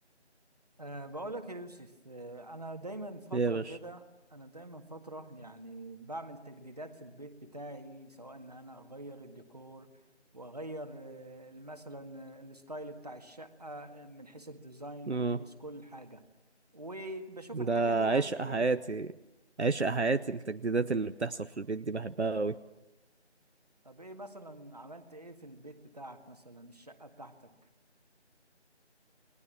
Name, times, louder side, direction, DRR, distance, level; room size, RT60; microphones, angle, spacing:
voice 1, 0.8-4.0 4.3-9.9 10.3-16.2 16.7-18.6 23.8-27.5, right 1 dB, 35° right, 6 dB, 1.8 m, -45 dB
voice 2, 3.3-3.8 15.1-15.4 17.5-19.1 19.6-22.6, right 3 dB, 70° right, 10 dB, 0.9 m, -30 dB
29.5 x 20.5 x 7.4 m, 1.0 s
figure-of-eight pair, 175°, 34 cm